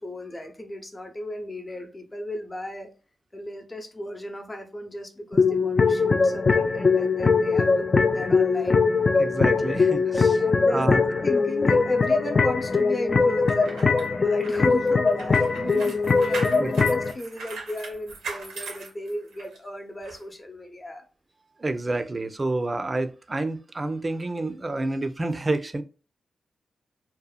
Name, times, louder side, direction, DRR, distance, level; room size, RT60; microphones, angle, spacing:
voice 1, 0.0-2.9 3.3-8.8 10.4-15.5 16.3-21.0, left 1 dB, 30° left, 0.7 m, -35 dB
sound 1, 5.3-17.1, left 4 dB, 45° left, 0.3 m, -21 dB
voice 2, 9.2-11.0 15.6-16.1 16.3-16.7 21.6-25.8, right 2 dB, 35° right, 0.4 m, -29 dB
sound 2, 13.3-19.6 20.0-20.2, right 4 dB, 90° right, 0.6 m, -39 dB
2.8 x 2.1 x 2.3 m
supercardioid pair, 40°, 0 cm